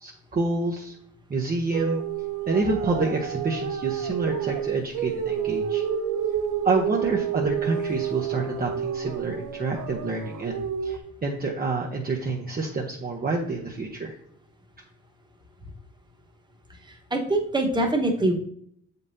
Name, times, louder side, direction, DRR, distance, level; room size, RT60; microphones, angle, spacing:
voice 1, 0.0-0.9 1.3-2.0 2.5-5.8 6.6-14.1, right 3 dB, 30° right, -1 dB, 0.9 m, -28 dB
sound 1, 1.7-11.0, right 8 dB, 85° right, 0.7 m, -29 dB
voice 2, 17.1-18.3, right 1 dB, 15° right, 1 dB, 1.3 m, -23 dB
7.1 x 5.3 x 2.7 m, 0.67 s
cardioid pair, 90°, 30 cm